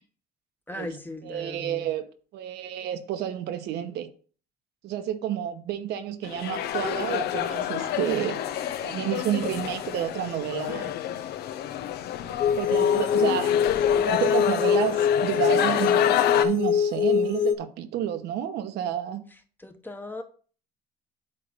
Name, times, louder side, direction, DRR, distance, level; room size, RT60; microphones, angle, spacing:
voice 1, 0.7-1.9 19.6-20.2, left 2 dB, 10° left, 1.1 m, -38 dB
voice 2, 1.2-2.1 2.3-4.1 4.8-8.4 8.8-10.9 12.3-13.5 14.0-19.2, right 10 dB, 80° right, 1.0 m, -30 dB
sound 1, 6.2-16.4, left 11 dB, 70° left, 0.7 m, -29 dB
sound 2, 12.4-17.5, left 7 dB, 50° left, 0.9 m, -23 dB
8.5 x 3.3 x 6.6 m
cardioid pair, 110°, 17 cm